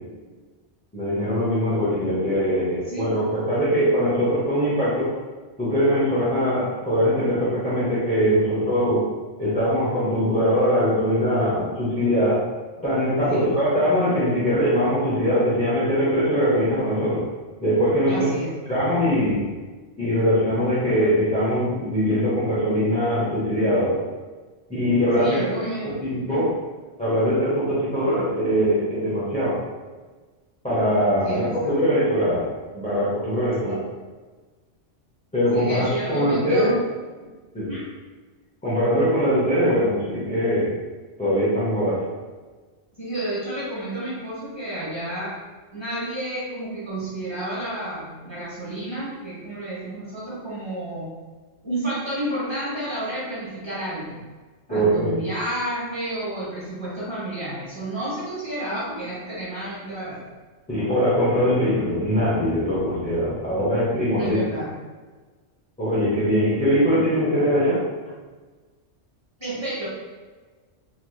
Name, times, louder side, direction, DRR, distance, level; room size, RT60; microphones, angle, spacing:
voice 1, 0.9-5.1 5.6-9.1 9.4-12.4 12.8-17.3 17.6-18.3 18.7-19.4 20.0-24.0 24.7-25.4 25.8-26.5 27.0-29.6 30.6-33.8 35.3-36.8 37.5-37.7 38.6-40.7 41.2-42.1 54.7-55.2 60.7-64.3 65.8-67.8, equal, 10° left, -10 dB, 0.6 m, -22 dB
voice 2, 18.1-18.6 25.2-26.4 31.2-31.8 33.6-33.8 35.5-36.9 37.2-37.3 37.5-37.9 43.0-45.4 45.7-51.1 51.6-54.2 54.7-60.2 64.2-64.7 69.4-69.9, right 1 dB, 25° right, -10 dB, 1.2 m, -31 dB
3.1 x 2.8 x 2.3 m, 1.4 s
omnidirectional pair, 1.2 m